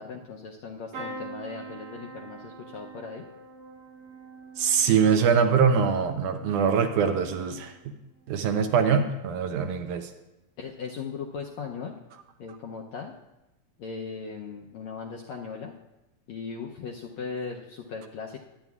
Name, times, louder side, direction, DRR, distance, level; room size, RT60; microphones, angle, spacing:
voice 1, 0.0-3.3 10.6-12.0 12.4-13.2 13.8-15.8 16.3-18.4, left 5 dB, 80° left, 0 dB, 1.6 m, -38 dB
sound 1, 0.9-8.8 9.2-9.8 11.0-11.2 11.4-11.5, right 3 dB, 60° right, 2.5 m, -45 dB
voice 2, 4.6-7.7 8.3-10.1, right 6 dB, 75° right, 6 dB, 2.0 m, -23 dB
23.0 x 9.4 x 2.4 m, 0.96 s
omnidirectional pair, 3.9 m